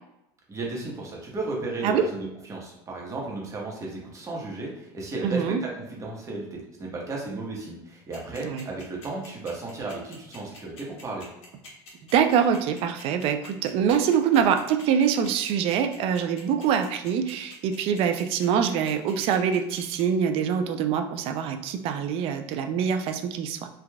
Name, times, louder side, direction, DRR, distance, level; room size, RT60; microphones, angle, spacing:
voice 1, 0.5-11.3, right 3 dB, 25° right, -2 dB, 0.9 m, -34 dB
voice 2, 5.2-5.6 8.4-8.7 12.1-23.7, right 7 dB, 55° right, 7 dB, 0.4 m, -24 dB
sound 1, 8.1-20.0, left 2 dB, 65° left, 1.1 m, -47 dB
3.2 x 2.4 x 2.2 m, 0.87 s
supercardioid pair, 110°, 12 cm